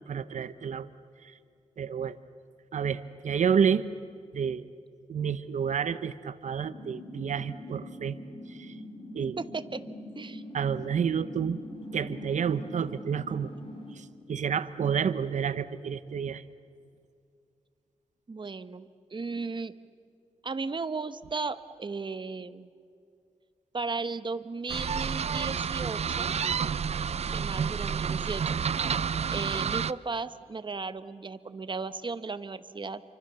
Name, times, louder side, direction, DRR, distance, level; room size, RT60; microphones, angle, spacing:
voice 1, 0.1-0.9 1.8-2.2 2.7-3.9 4.3-4.7 5.1-8.2 8.5-8.7 9.1-9.4 10.5-11.6 11.9-13.5 14.0-16.4, right 7 dB, 80° right, 14 dB, 0.9 m, -29 dB
sound 1, 6.6-13.9, left 1 dB, 45° left, 5.3 m, -43 dB
voice 2, 9.4-9.8 10.2-10.4 18.3-19.7 20.4-22.7 23.7-26.3 27.3-28.6 29.3-33.0, right 4 dB, 40° right, 13 dB, 1.1 m, -35 dB
sound 2, 24.7-29.9, right 7 dB, 60° right, 0.5 m, -30 dB
29.5 x 24.5 x 6.9 m, 2.3 s
cardioid pair, 75°, 12 cm